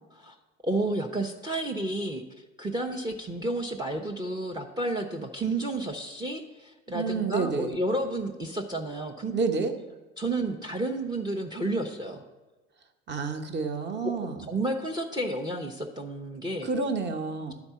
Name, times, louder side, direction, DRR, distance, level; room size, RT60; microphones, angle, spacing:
voice 1, 0.6-2.2 2.6-9.3 10.2-12.2 14.0-16.7, right 1 dB, 10° right, 4 dB, 0.6 m, -31 dB
voice 2, 6.9-7.7 9.3-9.7 13.1-14.5 16.6-17.5, right 4 dB, 30° right, 6 dB, 1.0 m, -29 dB
10.5 x 4.4 x 5.6 m, 1.2 s
figure-of-eight pair, 65°, 38 cm